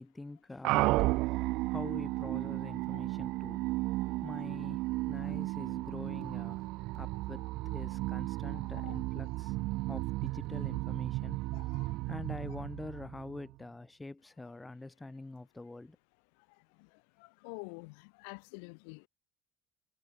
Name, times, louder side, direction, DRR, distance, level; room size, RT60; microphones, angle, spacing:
voice 1, 0.0-3.6 4.2-6.6 6.9-9.6 9.9-11.4 12.1-16.0, left 2 dB, 10° left, 2.2 m, -45 dB
sound 1, 0.6-13.5, right 21 dB, 75° right, 0.9 m, -34 dB
voice 2, 8.6-9.0 11.5-11.9 17.4-19.1, left 39 dB, 85° left, 5.6 m, -47 dB
supercardioid pair, 105°, 0 cm